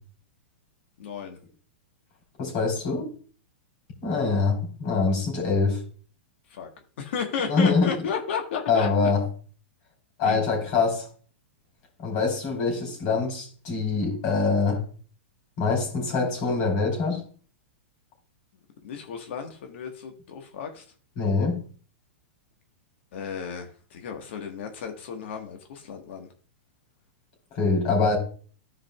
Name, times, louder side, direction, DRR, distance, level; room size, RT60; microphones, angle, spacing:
voice 1, 1.0-1.4 6.5-6.7 7.0-8.9 10.2-10.5 18.8-20.8 23.1-26.3, left 6 dB, 65° left, 3 dB, 1.3 m, -33 dB
voice 2, 2.4-3.1 4.0-5.8 7.5-7.9 8.7-9.2 10.2-11.1 12.0-14.8 15.6-17.2 21.2-21.6 27.5-28.2, left 4 dB, 45° left, 0 dB, 3.5 m, -24 dB
13.5 x 4.9 x 2.3 m, 0.42 s
hypercardioid pair, 125°, 7 cm